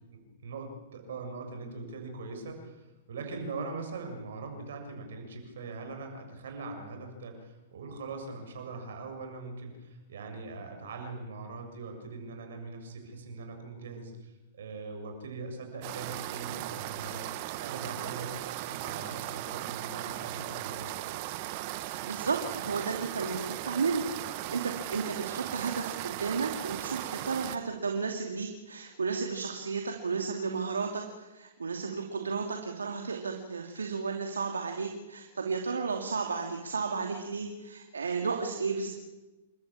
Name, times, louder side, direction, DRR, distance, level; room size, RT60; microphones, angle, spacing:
voice 1, 0.1-21.1, right 3 dB, 70° right, 4 dB, 7.1 m, -41 dB
sound 1, 15.8-27.6, right 15 dB, 50° right, 1.5 m, -37 dB
voice 2, 22.1-24.0 24.5-38.9, right 4 dB, 90° right, 3 dB, 2.5 m, -33 dB
29.5 x 13.5 x 8.8 m, 1.1 s
hypercardioid pair, 115°, 0 cm